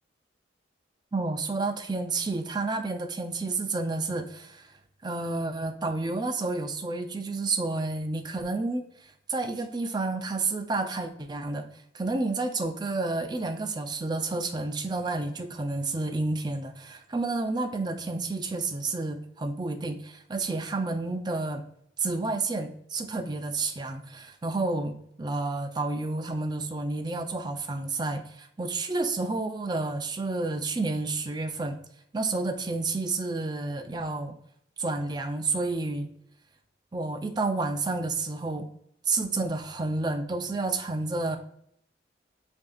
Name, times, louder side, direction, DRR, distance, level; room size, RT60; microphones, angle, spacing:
voice 1, 1.1-4.7 5.0-11.7 11.9-21.6 22.0-31.8 32.1-34.4 34.8-36.1 36.9-38.7 39.1-41.4, right 3 dB, 25° right, 6 dB, 0.4 m, -30 dB
7.6 x 2.7 x 2.3 m, 0.69 s
head